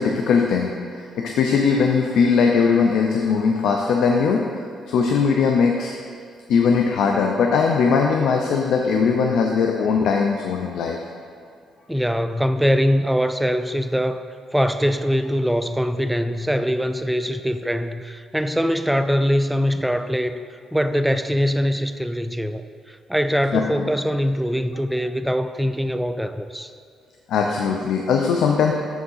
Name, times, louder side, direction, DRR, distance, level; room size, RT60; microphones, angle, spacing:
voice 1, 0.0-4.6 4.9-5.9 6.5-11.0 23.5-23.9 27.3-28.7, left 5 dB, 75° left, 2 dB, 0.5 m, -20 dB
voice 2, 11.9-14.2 14.5-20.4 20.7-22.6 23.1-26.7, equal, 5° right, 9 dB, 0.3 m, -22 dB
7.2 x 3.6 x 5.6 m, 2.3 s
cardioid pair, 90°, 0 cm